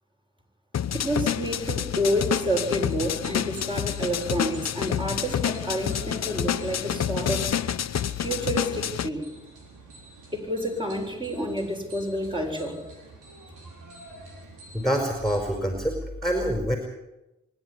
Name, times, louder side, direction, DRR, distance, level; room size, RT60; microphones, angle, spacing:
sound 1, 0.7-9.1, left 9 dB, 60° left, 0.9 m, -28 dB
voice 1, 0.9-7.4 8.2-9.3 10.3-12.8, equal, 15° right, 1 dB, 7.5 m, -29 dB
sound 2, 2.5-15.4, right 1 dB, 85° right, 4.4 m, -48 dB
voice 2, 14.7-16.8, equal, ahead, 3 dB, 4.9 m, -26 dB
24.5 x 11.0 x 9.9 m, 0.95 s
supercardioid pair, 50°, 31 cm